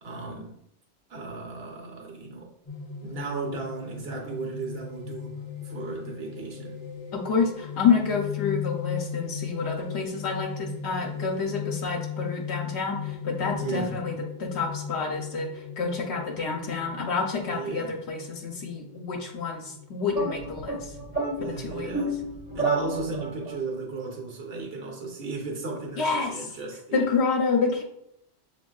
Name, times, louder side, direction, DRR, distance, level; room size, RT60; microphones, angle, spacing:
voice 1, 0.0-0.6 1.1-2.5 3.0-6.8 13.5-14.1 17.5-18.0 21.4-22.1 22.5-27.2, right 3 dB, 65° right, 1.2 m, -35 dB
sound 1, 2.7-21.8, left 7 dB, 45° left, 0.6 m, -37 dB
voice 2, 7.1-21.0 21.4-22.0 26.0-26.5 26.9-27.8, left 5 dB, 75° left, 0.9 m, -28 dB
sound 2, 20.1-23.6, right 2 dB, 10° right, 0.6 m, -31 dB
6.9 x 2.7 x 2.3 m
omnidirectional pair, 1.1 m